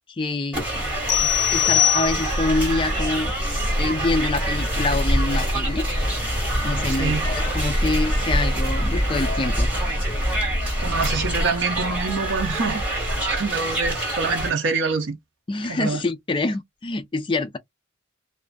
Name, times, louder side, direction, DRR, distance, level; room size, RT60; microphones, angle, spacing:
voice 1, 0.1-0.6 1.2-3.3 3.8-5.9 6.6-9.7 15.5-17.6, left 2 dB, 25° left, 0.3 m, -26 dB
sound 1, 0.5-14.5, right 1 dB, 10° right, 1.6 m, -27 dB
sound 2, 1.1-2.6, left 12 dB, 60° left, 0.6 m, -21 dB
sound 3, 2.0-11.4, equal, 30° right, 0.8 m, -27 dB
voice 2, 6.9-7.2 10.8-15.2 15.7-16.0, right 4 dB, 60° right, 0.6 m, -26 dB
2.4 x 2.4 x 2.2 m
head